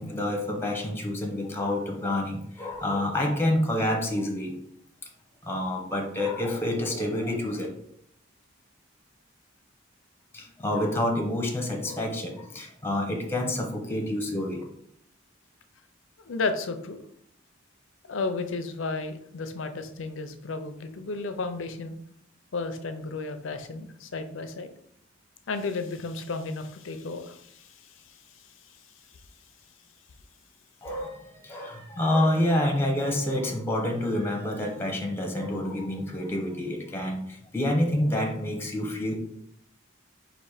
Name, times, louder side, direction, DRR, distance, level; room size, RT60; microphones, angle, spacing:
voice 1, 0.0-4.6 5.4-7.7 10.3-14.6 30.8-39.2, left 1 dB, 10° left, 1 dB, 0.8 m, -28 dB
voice 2, 16.2-17.0 18.0-22.0 22.5-24.7 25.5-28.8 29.1-29.2, left 3 dB, 80° left, 9 dB, 0.5 m, -33 dB
4.2 x 2.6 x 4.8 m, 0.69 s
head